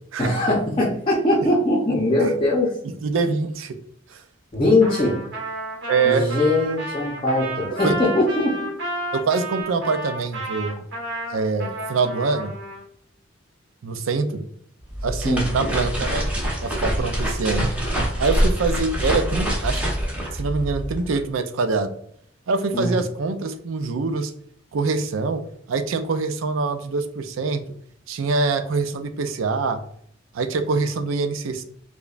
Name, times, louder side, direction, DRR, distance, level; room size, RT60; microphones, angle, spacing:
voice 1, 0.2-2.8 4.5-5.2 6.0-8.7 15.2-15.5 22.7-23.0, left 1 dB, 25° left, -4 dB, 0.6 m, -21 dB
voice 2, 3.0-3.8 4.1-4.2 5.9-6.3 7.7-7.9 9.1-10.9 11.3-12.5 13.8-14.5 15.0-16.3 16.6-17.7 18.2-19.8 20.3-21.9 22.5-24.3 24.7-25.4 25.7-27.6 28.1-29.8 30.3-31.6, right 4 dB, 80° right, 9 dB, 0.4 m, -24 dB
Trumpet, 4.8-12.8, right 1 dB, 65° right, 1.3 m, -32 dB
sound 1, 14.8-21.2, equal, 5° right, 0.9 m, -25 dB
4.9 x 2.2 x 2.4 m, 0.67 s
head